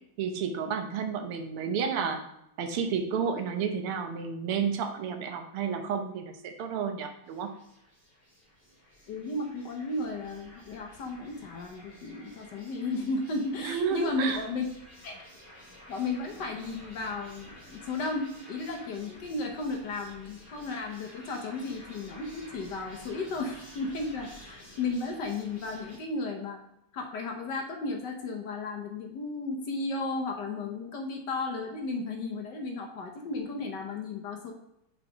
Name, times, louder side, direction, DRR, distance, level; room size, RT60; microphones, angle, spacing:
voice 1, 0.2-2.2 2.6-7.5 13.6-14.4, right 6 dB, 85° right, 6 dB, 1.7 m, -31 dB
sound 1, 7.2-26.0, left 1 dB, 20° left, 2.7 m, -52 dB
voice 2, 9.1-14.6 15.0-15.2 15.9-26.6 26.9-34.5, left 3 dB, 60° left, 2 dB, 1.3 m, -34 dB
5.6 x 4.9 x 5.0 m, 0.80 s
omnidirectional pair, 2.4 m